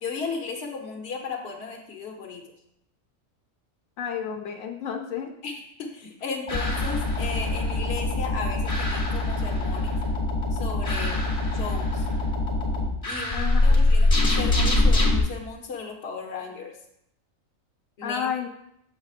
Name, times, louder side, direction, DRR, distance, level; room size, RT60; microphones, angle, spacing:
voice 1, 0.0-2.4 5.4-10.0 10.5-11.2 11.5-12.1 13.1-16.7 18.0-18.3, left 5 dB, 55° left, 2 dB, 1.1 m, -35 dB
voice 2, 4.0-5.3 13.3-13.8 18.0-18.5, left 7 dB, 75° left, 4 dB, 1.1 m, -31 dB
sound 1, 6.5-15.2, left 2 dB, 30° left, 1.1 m, -23 dB
7.1 x 6.7 x 2.4 m, 0.76 s
omnidirectional pair, 1.4 m